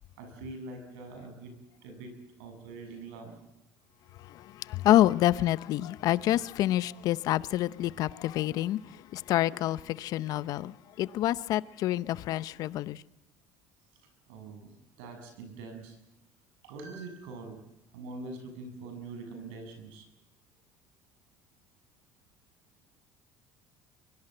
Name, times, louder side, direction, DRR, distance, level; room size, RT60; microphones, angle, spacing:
voice 1, 0.2-1.5 1.8-2.1 2.4-3.3 14.3-16.0 16.6-17.6 17.9-20.0, right 3 dB, 90° right, 7.7 m, -43 dB
voice 2, 4.1-13.0, left 13 dB, 60° left, 0.8 m, -28 dB
23.5 x 23.5 x 7.9 m
supercardioid pair, 110°, 7 cm